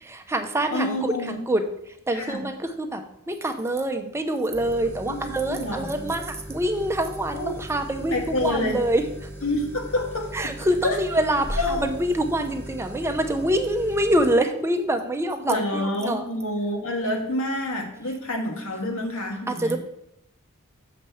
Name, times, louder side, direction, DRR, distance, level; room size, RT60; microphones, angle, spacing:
voice 1, 0.0-1.7 2.1-9.0 10.3-16.2 19.5-19.8, right 1 dB, 10° right, 5 dB, 0.7 m, -25 dB
voice 2, 0.7-1.4 2.1-2.4 5.1-6.1 7.3-7.5 8.1-8.8 9.4-10.5 10.8-11.0 11.6-11.9 15.5-19.8, left 1 dB, 65° left, 2 dB, 1.7 m, -28 dB
sound 1, 4.5-14.3, equal, 10° left, 1.8 m, -38 dB
6.6 x 5.2 x 7.0 m, 0.77 s
head